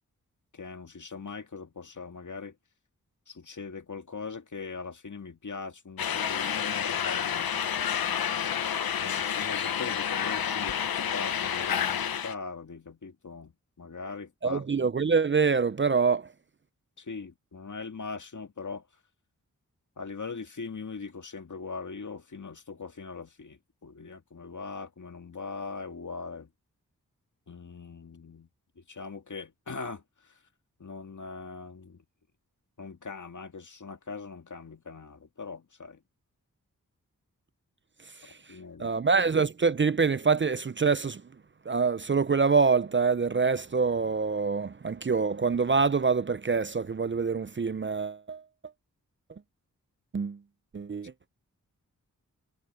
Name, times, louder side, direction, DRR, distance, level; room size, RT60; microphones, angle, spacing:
voice 1, 0.5-2.5 3.3-7.5 9.0-13.5 13.8-14.6 17.0-18.8 20.0-26.5 27.5-28.5 28.8-30.0 30.8-32.0 32.8-36.0 38.2-38.9, left 4 dB, 55° left, 2.0 m, -41 dB
sound 1, 6.0-12.3, left 8 dB, 90° left, 0.9 m, -29 dB
voice 2, 14.4-16.2 38.8-41.2 41.7-48.4 50.1-50.4 50.7-51.1, right 5 dB, 35° right, 0.5 m, -25 dB
cardioid pair, 40°, 35 cm